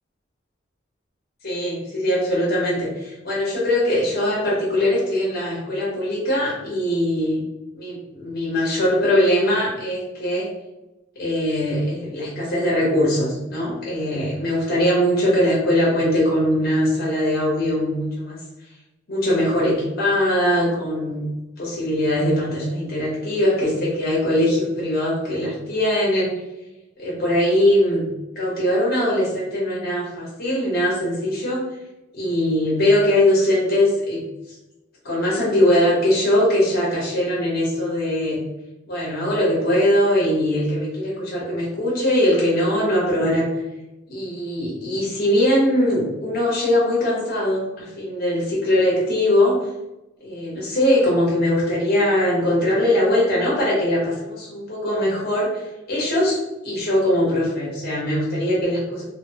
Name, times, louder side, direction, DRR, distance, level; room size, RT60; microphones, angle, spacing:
voice 1, 1.4-7.4 7.7-10.5 11.2-18.4 19.1-21.3 21.6-26.3 27.0-28.0 28.4-31.6 32.1-34.2 35.0-38.4 38.9-43.5 44.1-49.7 50.2-59.0, left 1 dB, 50° left, -5 dB, 0.8 m, -21 dB
2.8 x 2.0 x 2.7 m, 0.96 s
head